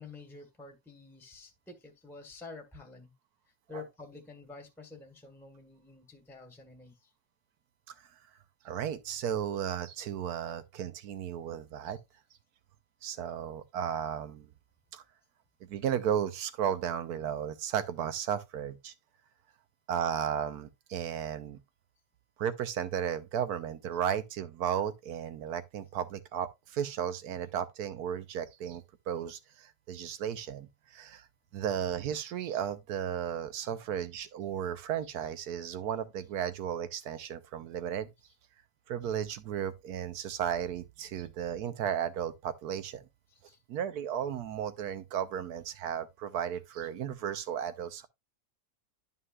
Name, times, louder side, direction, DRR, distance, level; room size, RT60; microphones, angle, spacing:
voice 1, 0.0-3.1 3.7-7.1 43.3-43.6, left 4 dB, ahead, 1.2 m, -49 dB
voice 2, 8.6-12.0 13.0-14.5 14.9-15.0 15.6-18.9 19.9-21.6 22.4-31.3 31.5-38.1 38.9-43.0 43.7-48.1, right 9 dB, 75° right, 1.2 m, -34 dB
11.0 x 5.6 x 2.4 m
omnidirectional pair, 1.7 m